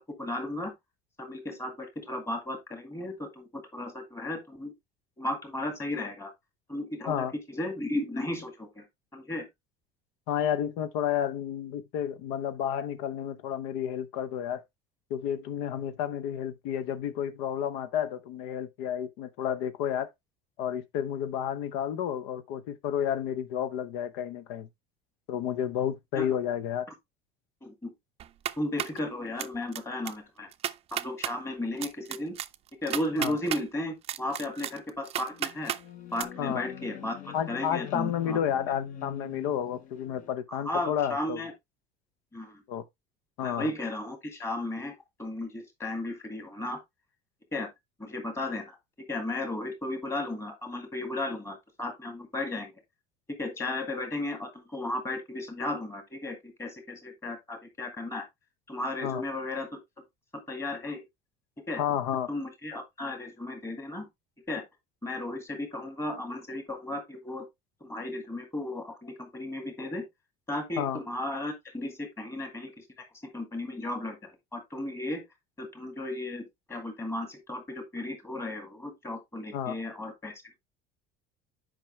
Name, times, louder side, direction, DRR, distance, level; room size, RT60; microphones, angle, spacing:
voice 1, 0.2-0.7 1.2-4.7 5.2-6.3 6.7-8.8 9.1-9.5 26.2-26.3 27.6-27.9 28.6-30.5 30.9-32.3 32.8-35.7 36.1-38.4 40.5-41.5 42.3-42.6 43.4-44.9 45.2-46.8 47.5-47.7 48.0-48.8 49.1-52.7 53.4-58.3 58.7-59.7 60.5-61.0 61.7-61.8 62.3-64.1 64.5-64.6 65.0-67.5 67.8-70.0 70.5-72.9 73.2-75.2 75.6-80.3, left 1 dB, 10° left, 2.0 m, -35 dB
voice 2, 10.3-14.6 15.1-20.1 20.6-24.7 25.3-26.9 33.2-33.4 36.4-36.6 37.3-41.4 42.7-42.8 43.4-43.7 59.0-59.2 61.8-62.3 70.8-71.0 79.5-79.8, left 9 dB, 90° left, 0.9 m, -31 dB
sound 1, 28.2-29.0 29.4-29.8 30.1-30.2 30.5-31.3 31.8-33.6 34.0-35.8 36.2-36.3, right 11 dB, 30° right, 0.4 m, -33 dB
sound 2, 35.3-40.3, left 9 dB, 40° left, 0.8 m, -44 dB
9.0 x 5.3 x 3.1 m
cardioid pair, 165°, 21 cm